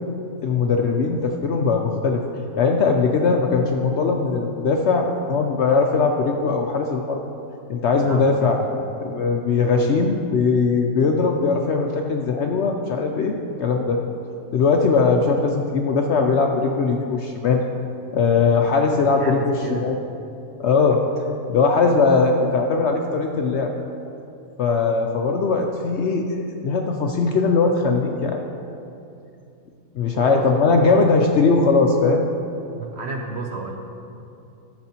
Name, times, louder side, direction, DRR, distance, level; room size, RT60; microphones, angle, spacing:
voice 1, 0.4-2.2 2.6-7.2 7.7-8.6 9.0-13.3 13.6-14.0 14.5-17.7 18.1-19.9 20.6-21.0 21.5-23.7 24.6-28.4 29.9-32.2, left 4 dB, 65° left, 3 dB, 0.7 m, -20 dB
voice 2, 8.0-8.9 19.0-19.9 30.1-30.5 30.9-31.1 32.8-33.8, right 3 dB, 60° right, 2 dB, 0.7 m, -32 dB
13.0 x 6.8 x 2.8 m, 2.6 s
omnidirectional pair, 1.6 m